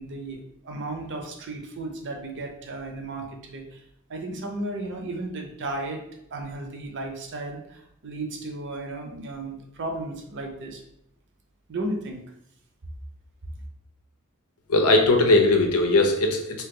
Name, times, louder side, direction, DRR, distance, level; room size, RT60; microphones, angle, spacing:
voice 1, 0.0-3.8 4.1-6.0 6.3-10.8 11.7-12.2, right 2 dB, 55° right, 3 dB, 0.6 m, -34 dB
voice 2, 14.7-16.6, left 2 dB, 85° left, 4 dB, 0.7 m, -19 dB
2.9 x 2.9 x 3.7 m, 0.77 s
head